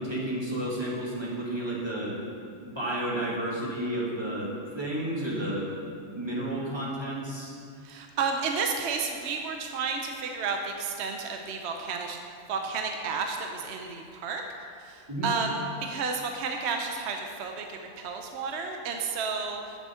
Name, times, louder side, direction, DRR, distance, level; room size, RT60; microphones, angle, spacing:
voice 1, 0.0-2.2 2.6-5.7 6.1-7.5 15.1-15.3, right 1 dB, 20° right, -5 dB, 1.7 m, -31 dB
voice 2, 7.8-12.2 12.5-14.4 14.8-19.8, right 5 dB, 65° right, 3 dB, 0.9 m, -32 dB
8.8 x 7.0 x 5.6 m, 2.4 s
omnidirectional pair, 1.3 m